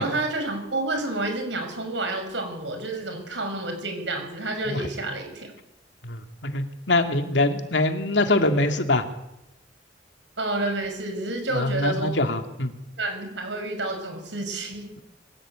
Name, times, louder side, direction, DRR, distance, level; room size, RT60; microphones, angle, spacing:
voice 1, 0.0-5.5 10.4-12.2 13.0-14.9, right 2 dB, 80° right, 5 dB, 6.3 m, -29 dB
voice 2, 6.0-9.0 11.5-12.7, left 2 dB, 80° left, 6 dB, 2.5 m, -24 dB
23.0 x 16.5 x 8.9 m, 0.89 s
head